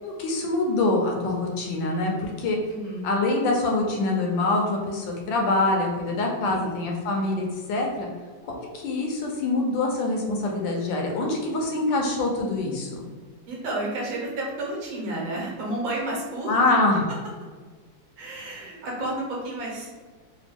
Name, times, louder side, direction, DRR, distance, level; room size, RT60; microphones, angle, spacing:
voice 1, 0.0-2.6 3.0-8.1 8.7-12.9 16.5-17.1, left 2 dB, 75° left, 0 dB, 1.4 m, -25 dB
voice 2, 2.7-3.1 6.4-6.7 13.5-16.5 18.2-19.9, right 1 dB, 90° right, -2 dB, 1.8 m, -31 dB
4.0 x 2.2 x 3.4 m, 1.4 s
omnidirectional pair, 2.1 m